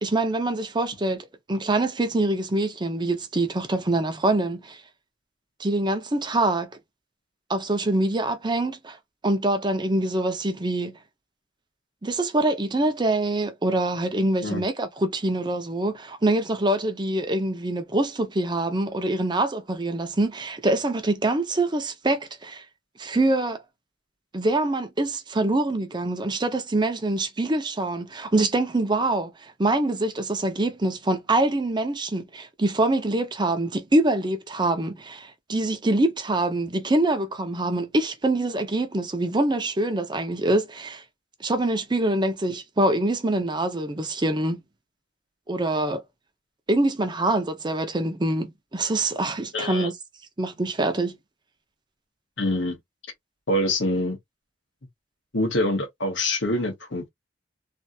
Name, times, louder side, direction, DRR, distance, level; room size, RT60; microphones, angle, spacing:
voice 1, 0.0-4.8 5.6-6.7 7.5-9.0 9.2-11.0 12.0-22.6 23.0-23.6 24.3-41.0 41.4-44.6 45.5-46.0 46.7-49.9 50.4-51.2, right 2 dB, 25° right, 0.7 m, -25 dB
voice 2, 49.5-49.9 52.4-52.8 53.5-54.2 55.3-57.1, left 1 dB, 80° left, 1.3 m, -25 dB
3.3 x 2.5 x 2.7 m
head